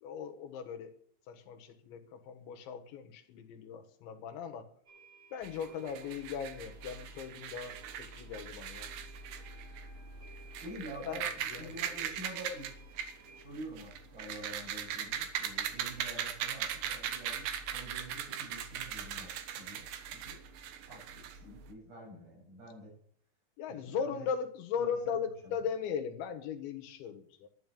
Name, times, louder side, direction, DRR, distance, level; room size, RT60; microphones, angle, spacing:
voice 1, 0.0-0.9 1.3-4.7 5.3-8.9 11.0-11.8 23.6-27.5, left 7 dB, 80° left, 6 dB, 3.6 m, -38 dB
sound 1, 4.9-13.4, right 2 dB, 30° right, 7.7 m, -59 dB
sound 2, 5.4-21.7, right 9 dB, 75° right, 3.1 m, -40 dB
voice 2, 10.6-12.7 13.4-17.4 17.7-19.3 19.6-19.9 20.1-20.4 20.9-22.9 23.9-24.3 24.8-25.2, right 1 dB, 50° right, -2 dB, 9.5 m, -47 dB
12.0 x 11.0 x 8.5 m, 0.62 s
omnidirectional pair, 5.3 m